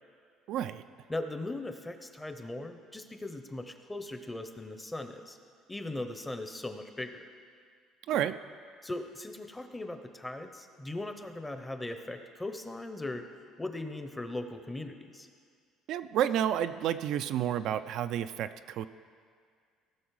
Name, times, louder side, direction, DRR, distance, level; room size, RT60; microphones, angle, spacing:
voice 1, 0.5-0.8 8.1-8.4 15.9-18.9, right 10 dB, 65° right, 10 dB, 0.3 m, -30 dB
voice 2, 1.1-5.4 5.7-7.3 8.8-13.3 13.6-15.3, left 2 dB, 10° left, 7 dB, 0.7 m, -39 dB
17.0 x 6.2 x 4.7 m, 2.1 s
cardioid pair, 125°, 0 cm